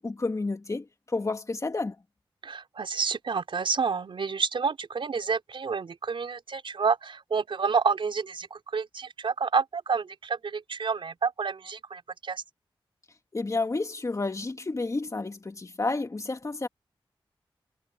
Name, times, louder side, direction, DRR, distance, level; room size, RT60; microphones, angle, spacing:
voice 1, 0.0-2.0 13.3-16.7, left 3 dB, 35° left, 2.7 m, -30 dB
voice 2, 2.4-12.4, right 5 dB, 70° right, 5.0 m, -29 dB
wide cardioid pair, 80°, 9 cm